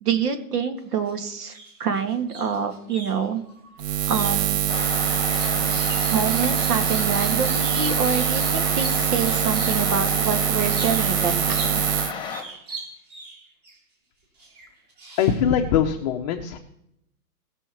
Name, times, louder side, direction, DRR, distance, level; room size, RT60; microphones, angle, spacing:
voice 1, 0.0-3.4 4.1-4.6 6.1-11.8, right 6 dB, 75° right, 7 dB, 2.0 m, -26 dB
sound 1, 0.8-1.1 1.4-9.9 10.6-11.2 11.5-13.8 14.4-15.6, right 3 dB, 20° right, 4.1 m, -40 dB
Buzz, 3.8-12.1, right 11 dB, 45° right, 0.6 m, -24 dB
sound 2, 4.7-12.4, left 6 dB, 10° left, 1.3 m, -32 dB
voice 2, 15.2-16.6, left 8 dB, 25° left, 4 dB, 0.6 m, -22 dB
18.5 x 6.3 x 4.5 m, 0.78 s
hypercardioid pair, 140°, 47 cm